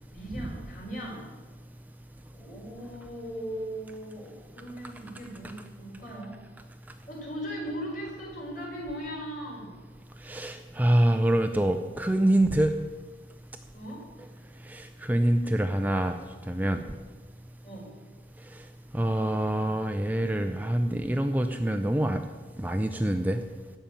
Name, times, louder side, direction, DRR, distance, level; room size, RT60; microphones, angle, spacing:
voice 1, 0.1-1.3 2.3-6.4 7.1-9.8 13.7-14.1 17.6-17.9, equal, 50° left, -2 dB, 4.5 m, -38 dB
voice 2, 10.2-12.7 14.7-16.2 16.5-16.8 18.9-22.2 22.6-23.4, right 1 dB, 10° right, 6 dB, 0.5 m, -25 dB
14.0 x 5.7 x 8.9 m, 1.3 s
head